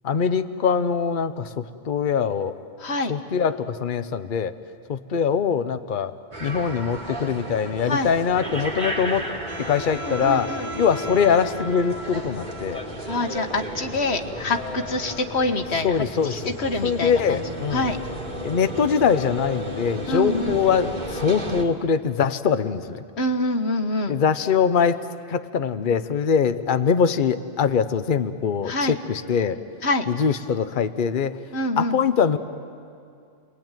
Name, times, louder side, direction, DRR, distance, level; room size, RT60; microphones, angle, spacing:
voice 1, 0.0-2.5 3.1-4.5 4.9-6.1 6.4-9.3 9.6-10.5 10.8-12.8 15.8-16.5 16.8-17.9 18.4-23.0 24.1-25.0 25.3-29.6 30.1-31.4 31.8-32.4, left 6 dB, 50° left, 10 dB, 1.0 m, -23 dB
voice 2, 2.8-3.1 7.9-8.1 10.0-10.7 13.1-17.4 17.7-18.0 20.1-20.6 23.2-24.2 28.6-29.0 29.8-30.0 31.5-32.0, left 2 dB, 65° left, 6 dB, 1.7 m, -26 dB
sound 1, 6.3-21.6, right 1 dB, 40° right, 2.6 m, -33 dB
30.0 x 21.5 x 9.1 m, 2.4 s
omnidirectional pair, 1.2 m